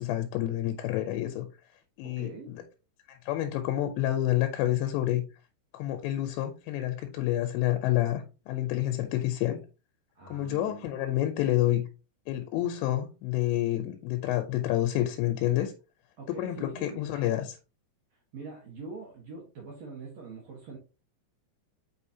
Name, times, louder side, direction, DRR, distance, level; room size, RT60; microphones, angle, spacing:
voice 1, 0.0-1.5 2.0-2.6 3.1-5.2 5.7-9.6 10.3-11.8 12.3-15.7 16.3-17.6, left 13 dB, 80° left, 2.8 m, -28 dB
voice 2, 2.0-2.5 10.1-10.9 16.2-17.0 18.3-20.8, right 4 dB, 75° right, 1.5 m, -43 dB
7.0 x 5.1 x 2.7 m
omnidirectional pair, 5.4 m